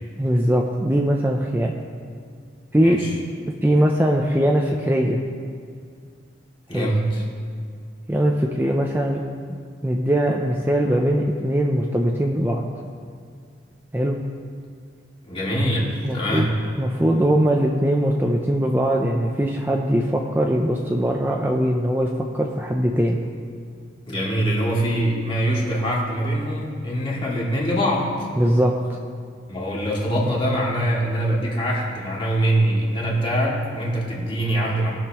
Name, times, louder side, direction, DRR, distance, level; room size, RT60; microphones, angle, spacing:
voice 1, 0.2-1.7 2.7-3.0 3.6-5.2 6.7-6.9 8.1-9.2 9.5-9.6 9.8-12.6 13.9-14.2 16.0-16.5 16.8-23.2 28.4-29.0, equal, 10° right, 0 dB, 0.5 m, -21 dB
voice 2, 2.8-3.1 6.7-7.2 15.2-16.5 24.1-28.1 29.5-34.9, right 1 dB, 30° left, -5 dB, 2.1 m, -23 dB
19.5 x 6.5 x 3.0 m, 2.2 s
head